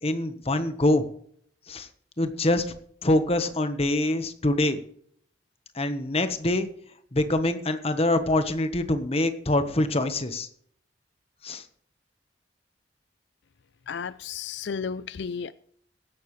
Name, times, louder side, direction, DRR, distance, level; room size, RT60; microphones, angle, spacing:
voice 1, 0.0-1.0 1.7-1.9 2.2-2.6 3.0-4.8 5.7-6.7 7.1-10.5 11.4-11.6, left 1 dB, 35° left, 9 dB, 1.2 m, -24 dB
voice 2, 13.9-15.5, left 6 dB, 70° left, 15 dB, 0.4 m, -33 dB
16.0 x 11.5 x 3.2 m, 0.62 s
head